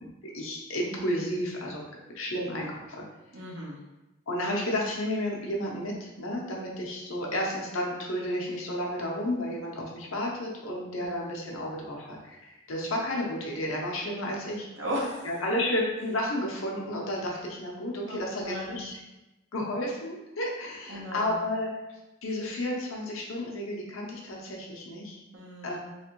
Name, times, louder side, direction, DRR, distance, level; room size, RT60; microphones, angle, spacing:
voice 1, 0.0-1.8 2.1-3.0 4.3-14.7 15.2-18.9 19.5-21.7 22.2-25.2 25.6-25.8, left 1 dB, 85° left, -2 dB, 0.9 m, -32 dB
voice 2, 3.3-3.8 11.0-11.1 14.8-15.3 18.0-18.9 20.9-21.4 25.3-25.8, equal, 65° right, -3 dB, 1.0 m, -36 dB
3.3 x 3.2 x 3.0 m, 1.0 s
head